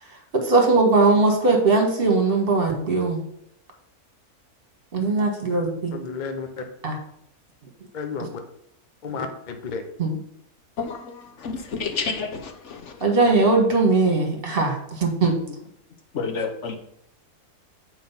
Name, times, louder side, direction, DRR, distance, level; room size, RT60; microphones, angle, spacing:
voice 1, 0.3-3.2 4.9-5.9 6.8-7.0 10.0-10.1 13.0-15.4, right 3 dB, 40° right, 2 dB, 1.6 m, -20 dB
voice 2, 5.9-6.6 7.9-8.4 9.0-9.8, left 4 dB, 40° left, 6 dB, 0.8 m, -32 dB
voice 3, 10.8-11.1 11.4-12.9 16.1-16.8, left 4 dB, 55° left, 6 dB, 1.2 m, -29 dB
7.7 x 4.7 x 5.5 m, 0.72 s
omnidirectional pair, 1.6 m